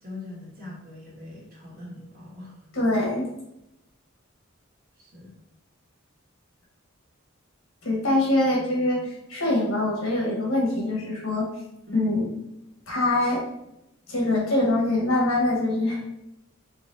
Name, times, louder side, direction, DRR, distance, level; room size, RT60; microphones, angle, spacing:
voice 1, 0.0-2.6 5.0-5.3 9.0-9.2 11.9-12.1, left 1 dB, 45° right, -3 dB, 1.3 m, -41 dB
voice 2, 2.7-3.3 7.8-11.5 11.9-12.2 12.9-13.4 14.1-16.0, left 2 dB, 80° left, -3 dB, 1.4 m, -24 dB
4.1 x 3.3 x 2.7 m, 0.86 s
head